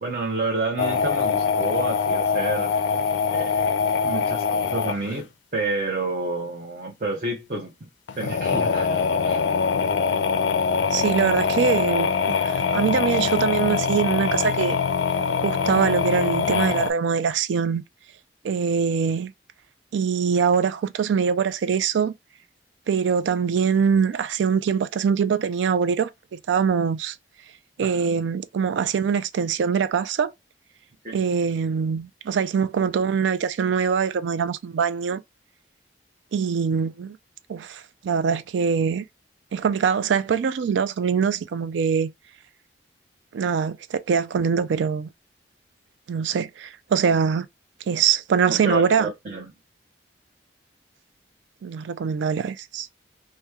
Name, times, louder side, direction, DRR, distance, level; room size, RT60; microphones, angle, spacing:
voice 1, 0.0-2.8 3.3-3.7 4.0-7.7 8.2-9.5 27.8-28.2 31.0-31.2 48.5-49.5, right 2 dB, 45° right, 0.7 m, -30 dB
sound 1, 0.8-5.2 8.1-16.9, left 5 dB, 90° left, 0.4 m, -23 dB
voice 2, 10.9-14.8 15.4-17.8 18.4-19.3 19.9-22.1 22.9-27.2 27.8-30.3 31.1-35.2 36.3-37.2 37.5-39.0 39.5-42.1 43.3-45.1 46.1-47.5 47.9-49.1 51.6-52.9, right 6 dB, 85° right, 0.3 m, -23 dB
2.9 x 2.1 x 3.4 m
head